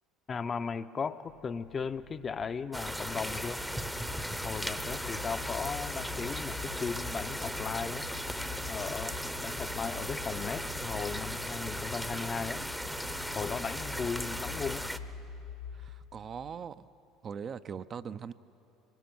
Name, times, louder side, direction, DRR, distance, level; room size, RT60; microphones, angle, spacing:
voice 1, 0.3-3.6 4.4-8.1 8.7-12.6 13.3-14.8, left 5 dB, 35° left, 11 dB, 0.7 m, -37 dB
sound 1, 1.3-16.2, left 6 dB, 85° left, 0.8 m, -46 dB
sound 2, 2.7-15.0, equal, ahead, 0.8 m, -37 dB
voice 2, 15.7-16.9 17.2-18.3, right 7 dB, 40° right, 14 dB, 0.5 m, -41 dB
25.0 x 20.0 x 6.1 m, 2.9 s
supercardioid pair, 85°, 0 cm